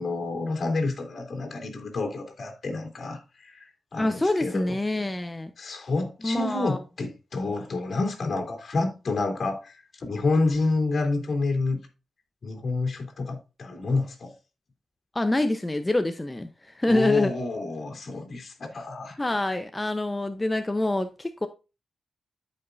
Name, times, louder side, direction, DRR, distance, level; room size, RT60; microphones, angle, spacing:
voice 1, 0.0-3.7 3.9-4.8 5.6-11.8 12.4-14.3 16.9-19.2, left 3 dB, 55° left, 3.2 m, -28 dB
voice 2, 4.0-5.5 6.2-6.8 15.1-17.3 19.2-21.5, left 1 dB, 20° left, 0.8 m, -26 dB
13.5 x 5.6 x 2.6 m
cardioid pair, 75°, 0 cm